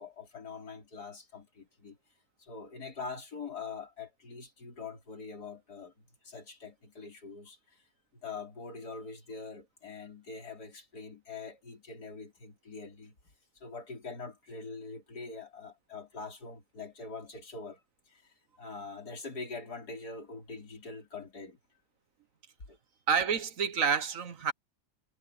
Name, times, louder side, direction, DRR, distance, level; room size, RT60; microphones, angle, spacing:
voice 1, 0.0-2.0 2.4-7.9 8.1-13.2 13.6-17.8 18.1-21.6 22.7-22.8, left 4 dB, 80° left, 4.3 m, -44 dB
voice 2, 23.1-24.5, right 6 dB, 60° right, 1.4 m, -28 dB
omnidirectional pair, 1.7 m